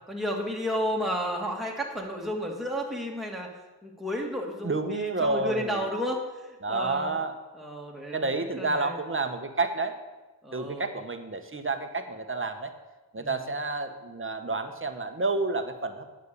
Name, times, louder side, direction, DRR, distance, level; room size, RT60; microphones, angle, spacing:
voice 1, 0.1-3.5 3.8-7.1 7.5-8.3 8.5-9.0 10.4-10.9 13.2-13.3, equal, ahead, -1 dB, 2.4 m, -32 dB
voice 2, 4.6-5.9 6.6-7.3 8.1-9.9 10.5-12.7 13.1-16.1, right 3 dB, 30° right, 7 dB, 1.2 m, -30 dB
9.3 x 6.3 x 6.8 m, 1.2 s
cardioid pair, 50°, 40 cm